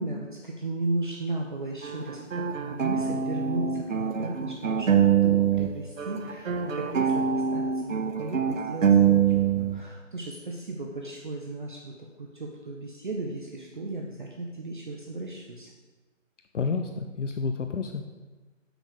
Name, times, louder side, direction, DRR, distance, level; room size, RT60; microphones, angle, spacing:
voice 1, 0.0-11.9 12.2-15.7, right 2 dB, 40° right, 0 dB, 0.7 m, -35 dB
sound 1, 1.8-5.7 6.0-9.8, right 8 dB, 80° right, 0.8 m, -24 dB
voice 2, 16.5-18.0, left 4 dB, 70° left, 6 dB, 0.7 m, -30 dB
6.1 x 5.2 x 6.6 m, 1.3 s
hypercardioid pair, 170°, 38 cm